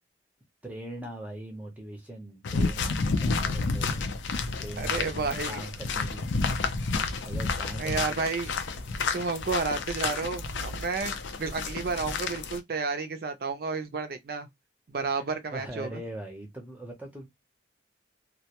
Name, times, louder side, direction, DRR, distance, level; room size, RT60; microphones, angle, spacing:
voice 1, 0.6-6.3 7.2-8.2 15.0-15.2 15.5-17.3, right 1 dB, 10° right, 0.6 m, -41 dB
sound 1, 2.4-12.6, left 4 dB, 80° left, 0.5 m, -30 dB
voice 2, 4.8-5.7 7.8-8.5 9.1-11.1 11.4-14.5 14.9-16.0, right 4 dB, 55° right, 0.4 m, -31 dB
2.2 x 2.1 x 2.8 m
head